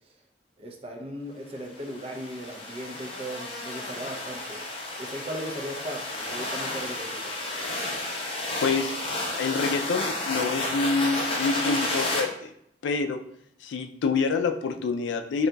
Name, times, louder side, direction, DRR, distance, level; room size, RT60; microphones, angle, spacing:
voice 1, 0.6-4.6 5.0-7.3, equal, 35° right, 2 dB, 0.5 m, -37 dB
sound 1, 1.8-12.2, left 2 dB, 30° left, 0.6 m, -32 dB
voice 2, 8.6-8.9 9.4-12.5 12.8-13.2 13.6-15.5, left 4 dB, 85° left, 6 dB, 0.3 m, -27 dB
3.8 x 2.7 x 2.2 m, 0.72 s
head